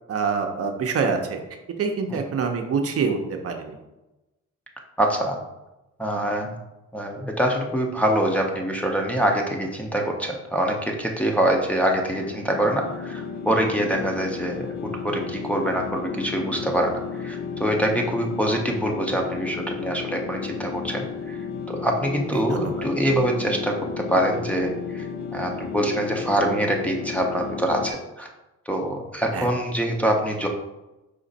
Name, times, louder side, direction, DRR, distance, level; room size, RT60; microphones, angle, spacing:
voice 1, 0.1-1.4 1.8-3.8 22.3-22.8 29.3-29.5, right 5 dB, 50° right, 3 dB, 0.7 m, -26 dB
voice 2, 5.0-5.4 6.0-6.6 6.9-14.7 15.0-16.9 17.2-21.4 21.7-25.1 25.3-28.3 28.7-30.5, right 1 dB, 5° left, -1 dB, 0.7 m, -24 dB
sound 1, 12.1-27.9, left 6 dB, 60° left, 0.6 m, -33 dB
5.0 x 2.4 x 4.0 m, 1.0 s
cardioid pair, 90°, 30 cm